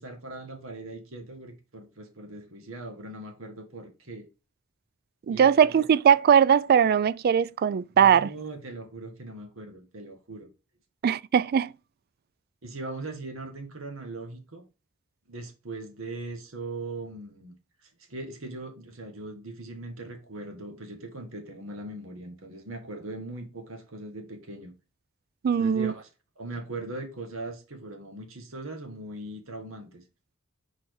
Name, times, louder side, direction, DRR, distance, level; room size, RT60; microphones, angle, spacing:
voice 1, 0.0-4.3 5.3-5.8 7.9-10.5 12.6-14.6 15.3-17.5 17.8-24.7 25.5-26.1 26.4-30.0, right 2 dB, 75° right, 1.6 m, -40 dB
voice 2, 5.3-8.3 11.0-11.7 25.4-25.9, right 8 dB, 50° right, 0.3 m, -20 dB
4.9 x 4.3 x 4.7 m
head